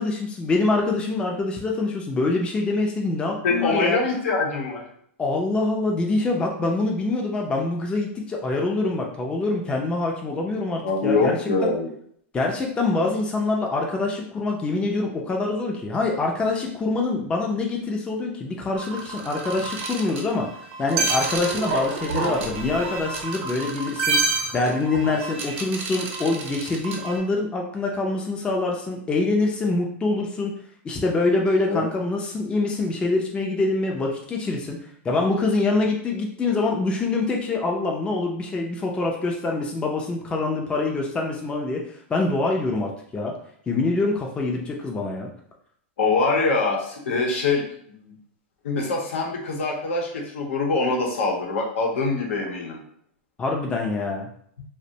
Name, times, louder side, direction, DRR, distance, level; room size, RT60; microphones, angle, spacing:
voice 1, 0.0-4.0 5.2-11.4 11.6-11.7 12.3-20.5 20.8-30.5 30.8-34.8 35.0-41.8 42.1-43.3 43.7-45.3 53.4-54.3, left 3 dB, 15° left, 0 dB, 0.4 m, -25 dB
voice 2, 3.4-4.8 10.8-11.9 31.7-31.8 46.0-47.6 48.1-48.2 48.6-52.8, left 3 dB, 85° left, 0 dB, 0.8 m, -24 dB
sound 1, 18.8-27.2, right 4 dB, 65° right, 0.7 m, -29 dB
2.4 x 2.1 x 2.8 m, 0.66 s
hypercardioid pair, 130°, 7 cm